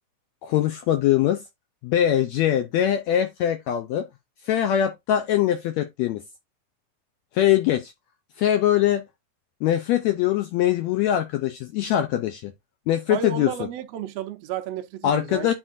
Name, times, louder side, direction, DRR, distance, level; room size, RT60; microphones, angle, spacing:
voice 1, 0.4-1.4 1.8-4.1 4.4-6.2 7.3-7.9 8.4-9.0 9.6-12.5 12.9-13.5 15.0-15.5, left 11 dB, 85° left, 1.6 m, -22 dB
voice 2, 13.1-15.5, right 9 dB, 80° right, 1.4 m, -32 dB
9.9 x 4.3 x 2.5 m
omnidirectional pair, 3.7 m